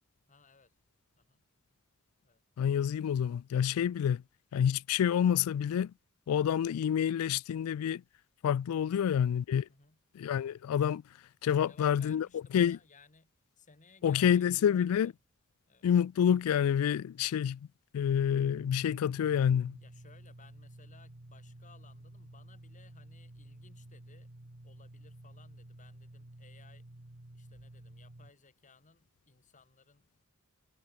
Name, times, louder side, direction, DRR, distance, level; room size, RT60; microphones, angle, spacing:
voice 1, 0.3-0.8 1.2-1.5 2.2-2.4 9.7-10.0 11.6-15.1 15.7-15.9 19.8-24.3 24.6-26.9 27.3-30.3, left 4 dB, 35° left, 1.9 m, -61 dB
voice 2, 2.6-4.2 4.5-5.9 6.3-8.0 8.4-9.7 10.2-11.0 11.4-12.3 12.5-12.8 14.0-15.1 15.8-17.7 17.9-19.8, left 8 dB, 80° left, 0.3 m, -28 dB
sound 1, 18.0-28.3, right 1 dB, 55° right, 1.8 m, -52 dB
head